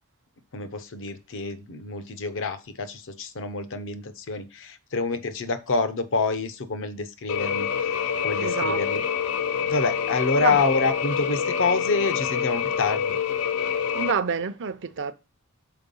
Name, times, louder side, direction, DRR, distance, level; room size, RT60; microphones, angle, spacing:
voice 1, 0.5-8.0 8.2-9.0 9.6-13.1, left 4 dB, 60° left, 0.9 m, -27 dB
sound 1, 7.3-14.1, left 7 dB, 80° left, 0.6 m, -26 dB
voice 2, 8.4-9.1 10.4-10.6 13.9-15.1, right 6 dB, 55° right, 0.6 m, -28 dB
5.8 x 4.5 x 5.4 m
head